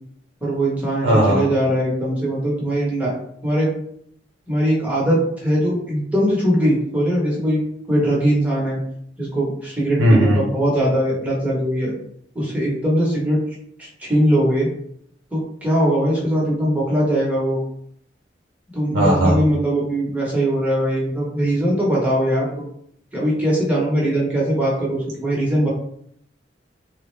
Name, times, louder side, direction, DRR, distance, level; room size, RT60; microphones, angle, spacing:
voice 1, 0.4-3.1 3.4-3.7 4.5-7.6 7.9-8.8 9.2-11.9 12.3-13.4 13.8-14.7 15.3-17.6 18.7-22.7 23.1-25.7, equal, 10° right, -5 dB, 1.0 m, -20 dB
voice 2, 1.0-1.4 10.0-10.4 18.9-19.4, right 1 dB, 90° right, -1 dB, 0.6 m, -15 dB
3.4 x 2.1 x 3.1 m, 0.69 s
head